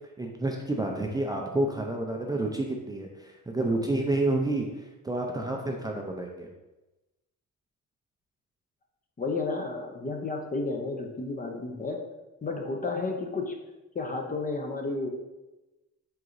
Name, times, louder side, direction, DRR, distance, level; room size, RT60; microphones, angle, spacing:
voice 1, 0.2-6.5, right 2 dB, 15° right, 1 dB, 0.4 m, -29 dB
voice 2, 9.2-12.0 12.4-13.6 13.9-15.1, left 3 dB, 30° left, 3 dB, 0.6 m, -32 dB
4.6 x 3.8 x 2.5 m, 1.1 s
cardioid pair, 90°, 30 cm